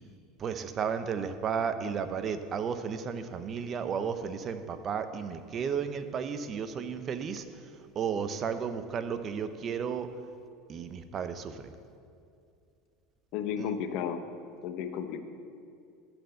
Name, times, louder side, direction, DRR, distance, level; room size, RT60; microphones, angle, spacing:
voice 1, 0.4-10.1 10.7-11.7 13.6-13.7, right 6 dB, 35° right, 10 dB, 0.7 m, -33 dB
voice 2, 13.3-14.2 14.6-15.2, left 8 dB, 60° left, 8 dB, 0.8 m, -33 dB
11.5 x 4.4 x 7.8 m, 2.4 s
supercardioid pair, 120°, 0 cm